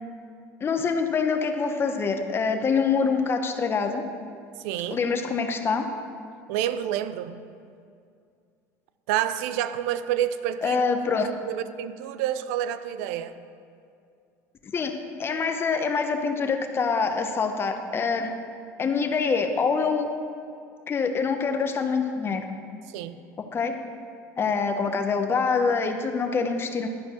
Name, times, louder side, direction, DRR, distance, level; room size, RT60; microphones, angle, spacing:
voice 1, 0.6-4.0 4.9-5.9 10.6-11.3 14.7-14.9 15.2-18.3 18.8-20.1 20.9-22.4 23.5-23.8 24.4-26.9, left 5 dB, 30° left, 6 dB, 0.9 m, -25 dB
voice 2, 4.6-5.0 6.5-7.5 9.1-10.8 11.2-13.4 22.9-23.2, right 11 dB, 80° right, 13 dB, 0.4 m, -29 dB
11.5 x 4.7 x 6.2 m, 2.4 s
supercardioid pair, 110°, 8 cm